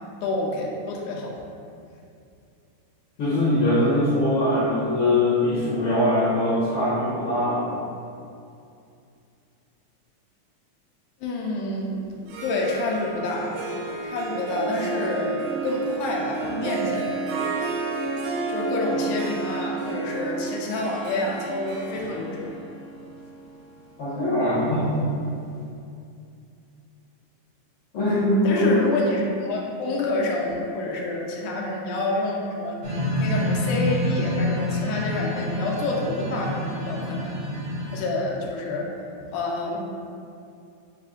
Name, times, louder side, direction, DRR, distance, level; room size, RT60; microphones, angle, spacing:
voice 1, 0.2-1.3 11.2-11.9 12.4-13.6 14.0-17.2 18.5-22.6 28.0-32.8 33.2-37.4 37.9-38.9 39.3-39.8, left 2 dB, 90° left, -2 dB, 2.1 m, -28 dB
voice 2, 3.2-7.8 24.0-25.1 27.9-28.8, left 1 dB, 75° left, -10 dB, 1.2 m, -22 dB
Harp, 12.2-25.1, right 4 dB, 90° right, 2.0 m, -31 dB
sound 1, 32.8-38.0, left 1 dB, 65° right, 1.4 m, -27 dB
5.2 x 2.4 x 3.6 m, 2.5 s
omnidirectional pair, 3.4 m